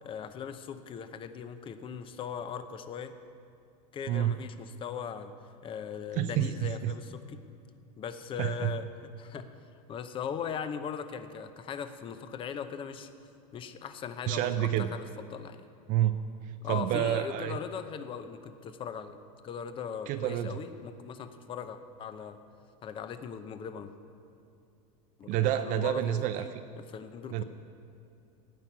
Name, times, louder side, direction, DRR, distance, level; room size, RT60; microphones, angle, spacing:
voice 1, 0.0-3.1 3.9-5.3 5.6-7.4 8.0-9.5 9.9-13.1 13.5-15.7 16.6-19.2 19.4-22.4 22.8-23.9 25.2-26.5 26.9-27.4, left 7 dB, 30° left, 10 dB, 0.7 m, -39 dB
voice 2, 6.2-6.9 8.4-8.7 14.3-14.9 15.9-17.6 20.1-20.6 25.3-26.6 27.3-27.4, right 11 dB, 45° right, 8 dB, 0.5 m, -29 dB
17.0 x 5.9 x 9.4 m, 2.7 s
supercardioid pair, 140°, 18 cm